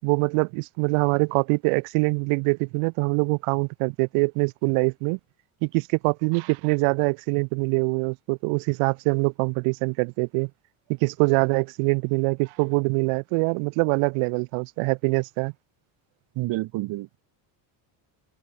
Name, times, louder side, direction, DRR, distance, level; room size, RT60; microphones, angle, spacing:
voice 1, 0.0-5.2 5.6-10.5 11.0-15.5, right 34 dB, 85° right, 6.9 m, -24 dB
voice 2, 16.4-17.2, right 18 dB, 60° right, 3.5 m, -29 dB
cardioid pair, 145°, 50 cm